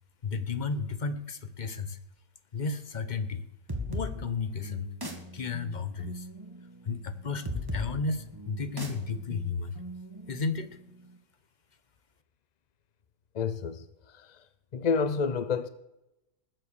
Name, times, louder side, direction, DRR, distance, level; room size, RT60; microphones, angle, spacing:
voice 1, 0.2-2.0 2.5-3.4 3.9-4.9 5.3-6.3 6.9-9.8 10.3-10.8, left 4 dB, 35° left, 1.0 m, -33 dB
sound 1, 3.7-11.1, left 1 dB, 15° right, 1.9 m, -39 dB
voice 2, 13.3-14.4 14.7-15.7, left 5 dB, 55° left, 0.5 m, -29 dB
20.0 x 7.9 x 6.8 m
omnidirectional pair, 1.5 m